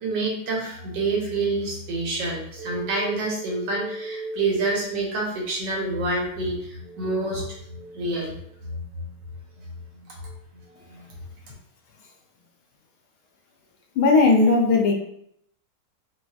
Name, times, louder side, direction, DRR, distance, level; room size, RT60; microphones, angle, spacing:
voice 1, 0.0-8.3 8.6-9.1 10.1-10.2 10.9-11.1, right 2 dB, 90° right, -1 dB, 1.5 m, -27 dB
voice 2, 14.0-14.9, left 3 dB, 75° left, 1 dB, 1.1 m, -17 dB
4.1 x 2.3 x 2.3 m, 0.71 s
omnidirectional pair, 1.9 m